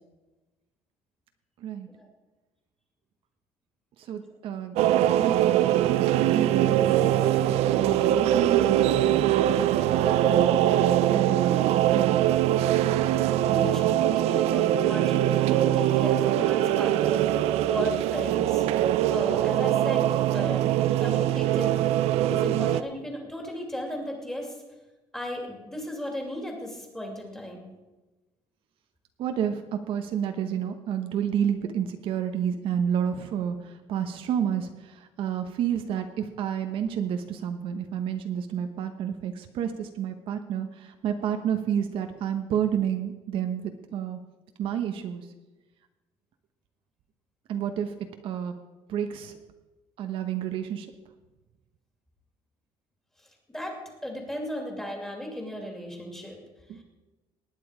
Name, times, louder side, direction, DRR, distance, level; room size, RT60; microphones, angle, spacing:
voice 1, 4.0-12.2 13.5-13.9 29.2-44.2 44.6-45.3 47.5-48.0 48.2-48.5 48.9-49.3 50.0-50.9 56.7-56.8, right 9 dB, 55° right, 6 dB, 1.0 m, -30 dB
sound 1, 4.8-22.8, right 12 dB, 75° right, 0.6 m, -22 dB
voice 2, 13.5-17.2 17.7-18.6 19.1-20.7 21.0-21.8 22.3-24.6 25.1-27.7 53.5-56.4 56.7-56.8, equal, 5° left, 2 dB, 2.5 m, -35 dB
19.0 x 9.4 x 5.0 m, 1.1 s
cardioid pair, 165°, 11 cm